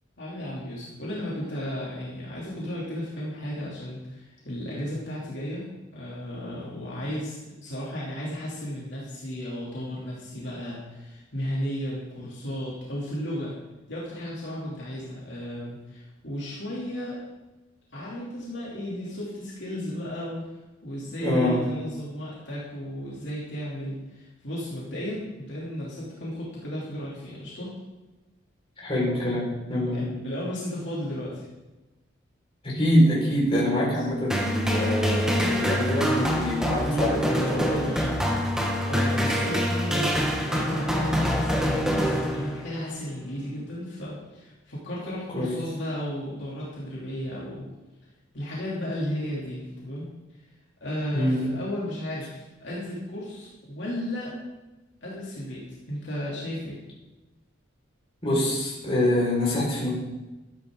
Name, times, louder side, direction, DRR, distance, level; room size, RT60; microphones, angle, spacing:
voice 1, 0.2-13.6 13.9-17.2 17.9-20.5 20.8-27.7 29.9-31.5 33.6-33.9 36.7-47.7 48.3-50.1 50.8-54.3 55.0-56.8, equal, 60° left, -6 dB, 3.0 m, -34 dB
voice 2, 21.2-21.6 28.8-30.1 32.6-37.8 45.3-45.5 51.1-51.4 58.2-59.9, left 1 dB, 30° left, -5 dB, 5.0 m, -25 dB
sound 1, 34.3-42.8, equal, 5° right, 1.5 m, -25 dB
13.0 x 11.5 x 3.9 m, 1.1 s
head